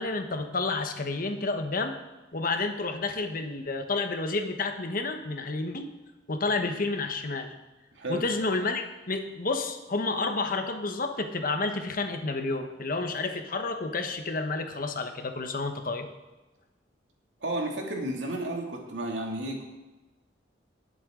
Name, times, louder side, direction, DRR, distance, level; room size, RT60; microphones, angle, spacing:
voice 1, 0.0-2.0 2.3-5.9 6.3-7.5 8.1-16.1, left 3 dB, 50° left, 6 dB, 1.2 m, -30 dB
voice 2, 17.4-19.6, right 1 dB, 85° right, 0 dB, 2.4 m, -32 dB
19.0 x 7.9 x 3.8 m, 1.1 s
head